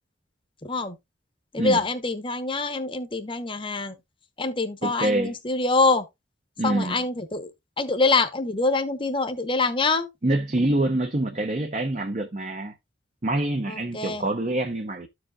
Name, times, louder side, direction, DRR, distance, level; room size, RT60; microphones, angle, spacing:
voice 1, 0.6-1.0 1.5-4.0 4.4-6.1 6.6-7.5 7.8-10.1 13.7-14.3, left 3 dB, 30° left, 1.0 m, -25 dB
voice 2, 4.8-5.4 6.6-7.0 10.2-12.7 13.2-15.1, right 1 dB, 40° right, 0.8 m, -26 dB
13.5 x 4.9 x 2.3 m
head